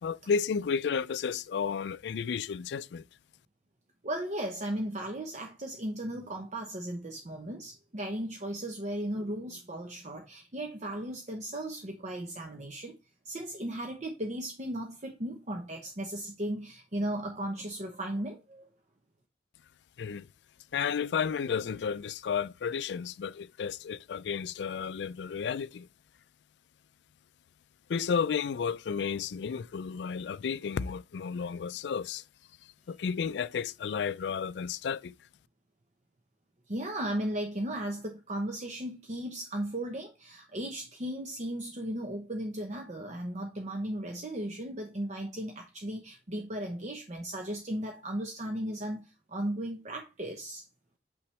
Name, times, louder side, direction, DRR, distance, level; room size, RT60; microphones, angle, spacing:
voice 1, 0.0-3.0 20.0-20.3 20.7-25.9 27.9-32.2 32.9-35.1, left 6 dB, 70° left, 0.3 m, -32 dB
voice 2, 4.0-13.0 13.2-18.7 36.7-50.6, right 1 dB, 40° right, 0.8 m, -36 dB
7.0 x 5.7 x 3.2 m
head